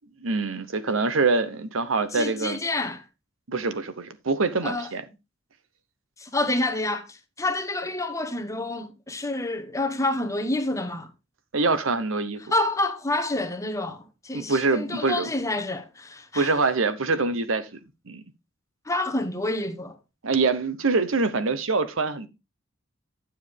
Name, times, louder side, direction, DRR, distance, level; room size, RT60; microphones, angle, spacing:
voice 1, 0.2-2.6 3.5-5.0 11.5-12.4 14.3-15.3 16.3-17.7 18.1-18.2 20.2-22.3, right 3 dB, 80° right, 1.0 m, -24 dB
voice 2, 2.1-3.0 4.6-4.9 6.2-11.1 12.5-16.5 18.9-20.0, left 2 dB, 15° left, 0.9 m, -28 dB
9.7 x 7.2 x 3.4 m
head